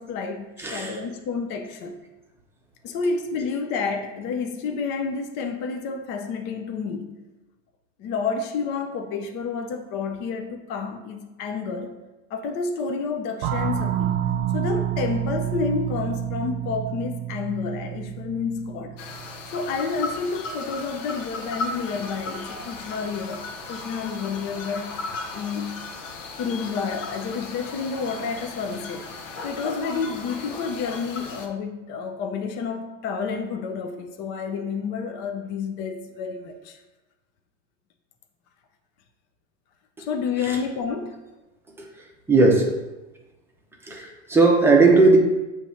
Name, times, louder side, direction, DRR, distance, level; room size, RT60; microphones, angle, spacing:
voice 1, 0.0-2.0 2.8-7.2 8.0-11.9 12.3-14.2 14.5-19.0 19.5-25.0 25.3-25.9 26.4-29.1 29.4-36.8 40.0-41.2, left 5 dB, 30° left, 0.4 m, -30 dB
voice 2, 0.6-1.0 40.0-40.1 40.4-40.6 41.8-41.9 42.3-42.7 43.8-45.2, right 3 dB, 5° right, 0.7 m, -18 dB
sound 1, 13.4-19.7, right 11 dB, 60° right, 0.6 m, -29 dB
sound 2, 19.0-31.5, left 3 dB, 80° left, 1.1 m, -36 dB
7.6 x 3.1 x 5.6 m
supercardioid pair, 160°, 37 cm